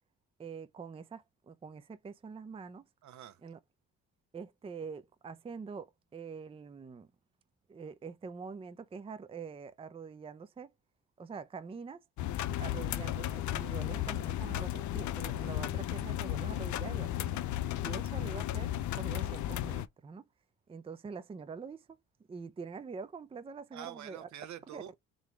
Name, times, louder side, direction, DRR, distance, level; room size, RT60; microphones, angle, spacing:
voice 1, 0.4-2.8 3.4-3.6 4.3-7.1 7.7-10.7 11.2-12.0 12.6-17.4 17.8-20.3 20.7-21.9 22.3-24.3 24.7-24.8, right 5 dB, 20° right, 0.5 m, -45 dB
voice 2, 3.0-3.4 23.7-25.0, right 10 dB, 70° right, 0.8 m, -46 dB
sound 1, 12.2-19.9, left 13 dB, 70° left, 0.5 m, -34 dB
3.9 x 3.3 x 2.9 m
cardioid pair, 90°, 30 cm